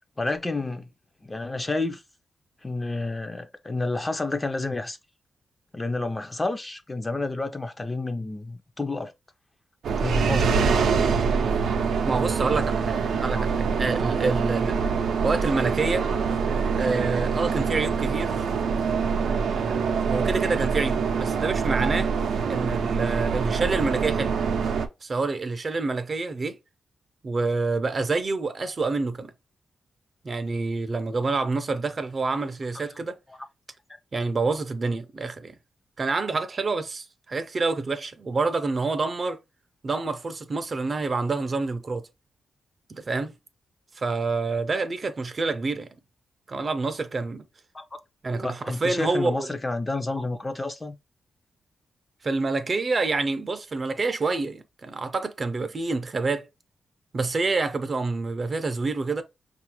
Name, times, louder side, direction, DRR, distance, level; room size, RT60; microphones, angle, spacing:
voice 1, 0.2-0.9 1.2-2.0 2.6-5.0 5.7-9.1 10.0-10.7 13.3-13.4 47.7-47.8 48.3-51.0, left 2 dB, 20° left, 0.5 m, -30 dB
sound 1, 9.8-24.9, right 5 dB, 90° right, 0.5 m, -25 dB
voice 2, 12.0-14.8 15.2-16.1 16.8-18.4 19.5-22.1 22.5-24.3 25.0-26.6 27.2-29.3 30.2-33.2 34.1-35.6 36.0-39.4 39.8-42.1 42.9-43.3 44.0-45.9 46.5-47.5 48.2-49.5 52.2-56.5 57.1-59.2, right 3 dB, 40° right, 0.5 m, -27 dB
5.0 x 2.4 x 2.9 m
wide cardioid pair, 110°, 0 cm